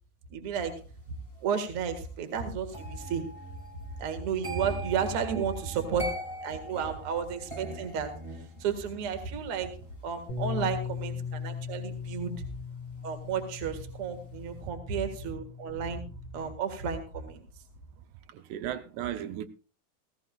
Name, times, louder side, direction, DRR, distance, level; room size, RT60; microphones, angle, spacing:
voice 1, 0.3-0.7 1.4-3.2 4.0-6.0 6.4-8.1 8.6-9.7 10.0-12.3 13.0-16.0 16.3-17.4, right 7 dB, 50° right, 1.9 m, -32 dB
sound 1, 2.7-13.7 14.0-14.4, right 2 dB, 25° right, 0.6 m, -43 dB
Bass guitar, 10.3-16.5, left 6 dB, 60° left, 2.5 m, -39 dB
voice 2, 18.3-19.5, right 11 dB, 85° right, 2.9 m, -35 dB
17.5 x 15.5 x 2.4 m
omnidirectional pair, 4.6 m